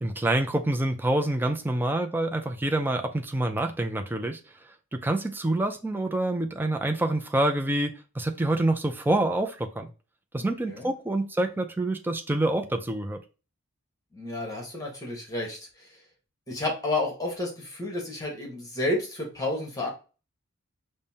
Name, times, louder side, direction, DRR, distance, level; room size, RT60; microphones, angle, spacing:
voice 1, 0.0-4.4 4.9-9.9 10.3-13.2, right 1 dB, 10° right, 0.3 m, -27 dB
voice 2, 10.4-10.9 14.1-15.7 16.5-19.9, left 2 dB, 15° left, 1.2 m, -31 dB
5.2 x 2.1 x 2.7 m
head